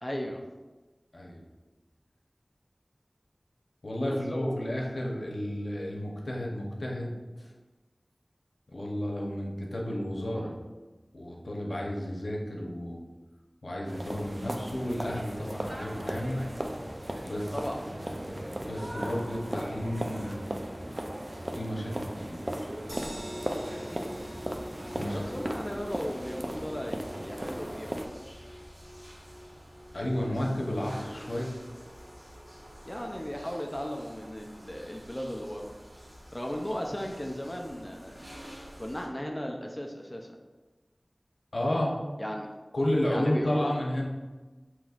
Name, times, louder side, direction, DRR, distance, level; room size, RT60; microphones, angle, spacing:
voice 1, 0.0-0.4 4.1-4.7 17.5-17.8 23.9-24.1 25.1-28.1 32.9-35.7 36.3-38.1 38.8-40.3 42.2-42.5 43.1-43.8, equal, 20° left, 1 dB, 0.4 m, -36 dB
voice 2, 3.8-7.5 8.7-10.5 11.1-13.0 13.6-16.4 17.3-17.5 18.0-20.6 21.5-22.7 24.9-25.2 29.9-31.5 41.5-42.0 42.7-44.1, left 1 dB, 80° left, -2 dB, 0.8 m, -32 dB
sound 1, 13.9-28.1, right 1 dB, 40° right, 0.4 m, -37 dB
sound 2, 22.9-35.1 35.5-35.6 35.9-36.0, equal, 75° right, 1.3 m, -47 dB
sound 3, 24.1-39.1, equal, 55° right, 1.3 m, -50 dB
5.8 x 3.0 x 2.4 m, 1.2 s
wide cardioid pair, 55°, 0 cm